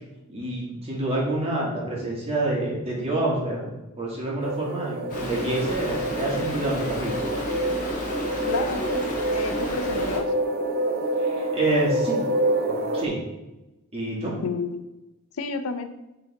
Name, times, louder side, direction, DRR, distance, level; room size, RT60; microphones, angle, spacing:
voice 1, 0.3-7.2 11.2-12.2 12.7-13.2 13.9-14.3, right 2 dB, 30° right, -5 dB, 2.1 m, -27 dB
sound 1, 4.4-13.1, right 1 dB, 45° right, 0.8 m, -27 dB
Stream, 5.1-10.2, equal, 35° left, 1.6 m, -32 dB
voice 2, 8.5-8.8 9.3-10.3 14.4-14.8 15.4-15.9, left 4 dB, 75° left, 9 dB, 0.5 m, -30 dB
8.1 x 4.0 x 3.5 m, 1.0 s
head